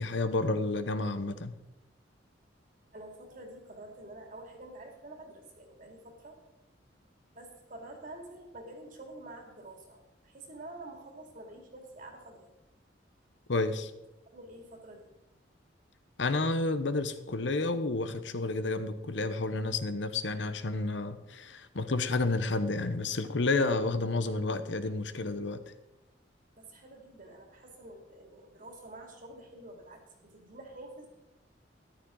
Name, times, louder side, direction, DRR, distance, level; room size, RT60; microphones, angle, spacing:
voice 1, 0.0-1.5 13.5-13.9 16.2-25.7, left 3 dB, 75° left, 11 dB, 0.9 m, -30 dB
voice 2, 2.9-6.4 7.3-12.5 14.3-15.1 26.6-31.1, right 2 dB, 45° right, 2 dB, 2.6 m, -48 dB
13.5 x 11.5 x 3.9 m, 0.96 s
head